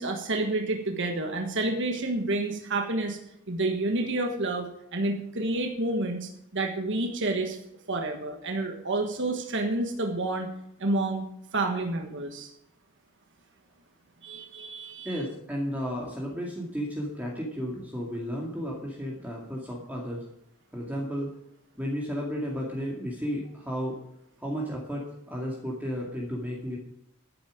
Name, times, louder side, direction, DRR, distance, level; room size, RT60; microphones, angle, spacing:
voice 1, 0.0-3.2 3.5-4.7 4.9-7.6 7.9-10.5 10.8-11.2 11.5-12.5 14.2-15.2, right 2 dB, 55° right, 3 dB, 1.4 m, -29 dB
voice 2, 15.0-20.2 20.7-21.3 21.8-24.0 24.4-26.8, equal, 5° right, -3 dB, 2.2 m, -33 dB
11.5 x 10.0 x 5.1 m, 0.76 s
head